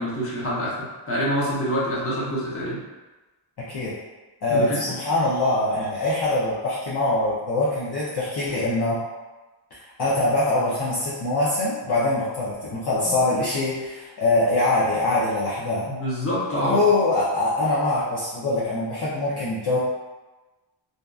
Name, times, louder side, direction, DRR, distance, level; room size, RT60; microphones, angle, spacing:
voice 1, 0.0-2.8 4.5-4.9 13.0-13.2 15.8-16.8, equal, 30° left, -7 dB, 0.9 m, -26 dB
voice 2, 4.4-9.0 9.7-15.8 16.6-19.8, left 2 dB, 55° left, -8 dB, 0.6 m, -23 dB
2.6 x 2.4 x 2.3 m, 1.2 s
wide cardioid pair, 105°, 48 cm